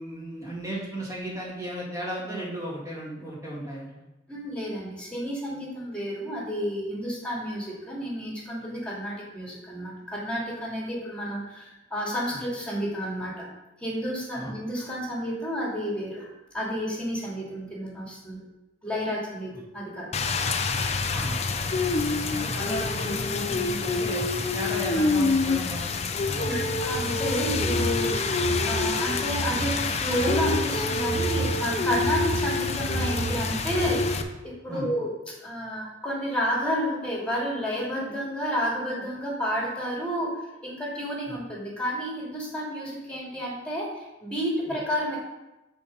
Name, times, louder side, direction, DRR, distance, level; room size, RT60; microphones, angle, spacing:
voice 1, 0.0-3.9 12.3-12.4 14.3-14.5 21.1-21.4 21.9-24.2 24.5-25.9 26.2-26.8 34.7-34.8, right 1 dB, 15° right, -6 dB, 2.4 m, -35 dB
voice 2, 4.3-13.4 13.8-16.3 16.5-18.4 18.8-20.1 26.5-28.1 28.6-34.2 34.4-45.2, equal, 5° left, -4 dB, 2.4 m, -31 dB
Rain, 20.1-34.2, left 3 dB, 35° left, 0.6 m, -27 dB
sound 1, 27.0-33.9, right 2 dB, 35° right, 1.4 m, -33 dB
sound 2, 28.2-31.8, left 2 dB, 80° right, 1.3 m, -49 dB
8.9 x 4.4 x 5.5 m, 0.98 s
head